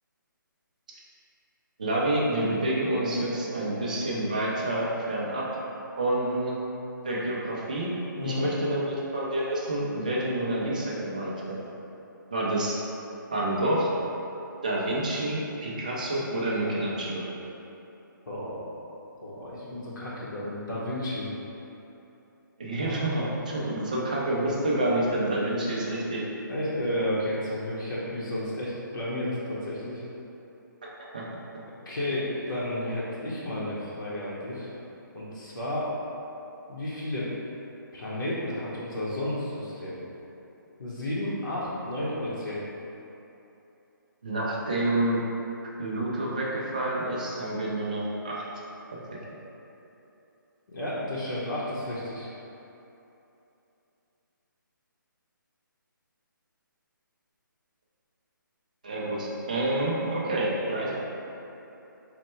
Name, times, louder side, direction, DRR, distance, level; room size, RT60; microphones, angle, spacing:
voice 1, 1.8-5.5 6.0-6.6 7.0-7.9 8.2-11.6 12.3-12.8 13.3-13.9 14.6-17.2 22.6-26.2 31.1-31.2 44.2-45.2 45.8-48.4 49.1-49.2 58.8-61.0, right 1 dB, 20° right, -5 dB, 0.4 m, -28 dB
voice 2, 8.1-8.5 18.3-18.7 19.2-21.3 26.5-30.0 31.9-34.7 35.1-35.9 36.7-37.3 37.9-40.0 40.8-42.6 50.7-52.3, left 1 dB, 70° left, -8 dB, 0.9 m, -32 dB
4.1 x 2.1 x 4.2 m, 3.0 s
hypercardioid pair, 180°, 11 cm